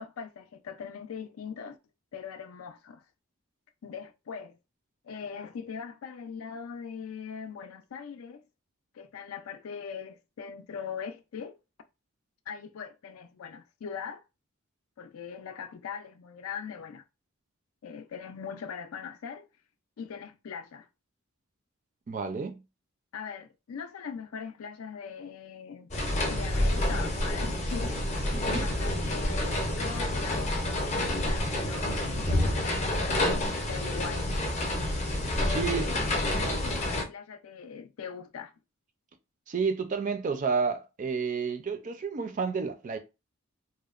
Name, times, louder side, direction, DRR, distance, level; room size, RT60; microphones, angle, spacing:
voice 1, 0.0-1.8 2.1-3.0 3.8-4.6 5.0-8.4 8.9-11.5 12.5-14.2 15.0-17.0 17.8-19.5 20.0-20.9 23.1-25.9 26.3-28.0 28.5-34.3 35.4-38.5, left 6 dB, 90° left, 0.4 m, -41 dB
voice 2, 22.1-22.6 28.3-28.7 35.5-35.9 39.5-43.0, right 5 dB, 40° right, 0.4 m, -30 dB
sound 1, 25.9-37.0, left 1 dB, 35° left, 0.5 m, -28 dB
2.7 x 2.0 x 2.4 m
head